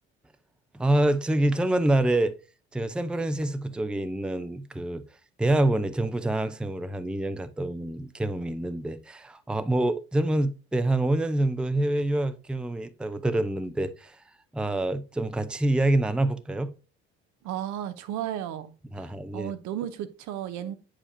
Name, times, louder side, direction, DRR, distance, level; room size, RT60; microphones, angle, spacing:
voice 1, 0.7-2.3 2.7-5.0 5.4-14.2 14.5-16.7 18.9-19.5, right 1 dB, 5° right, 0.6 m, -26 dB
voice 2, 17.4-20.7, right 11 dB, 60° right, 0.7 m, -34 dB
8.4 x 5.0 x 2.7 m
hypercardioid pair, 50°, 32 cm